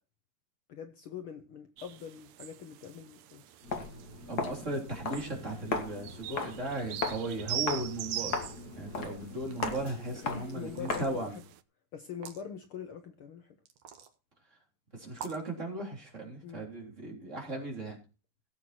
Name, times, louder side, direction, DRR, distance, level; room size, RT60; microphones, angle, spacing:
voice 1, 0.7-3.4 10.1-11.4 11.9-13.5 16.4-16.7, left 7 dB, 85° left, 7 dB, 1.1 m, -43 dB
sound 1, 1.8-11.6, right 13 dB, 80° right, 1.5 m, -43 dB
Walk footsteps, 3.6-11.3, left 4 dB, 35° left, 1.8 m, -38 dB
voice 2, 4.3-8.5 8.8-11.4 14.9-18.0, right 2 dB, 20° right, 0 dB, 3.6 m, -37 dB
sound 2, 9.4-9.9 10.7-11.3 12.1-12.4 13.7-14.1 15.1-15.5, right 7 dB, 55° right, 2.4 m, -45 dB
16.5 x 7.9 x 4.3 m, 0.31 s
omnidirectional pair, 3.9 m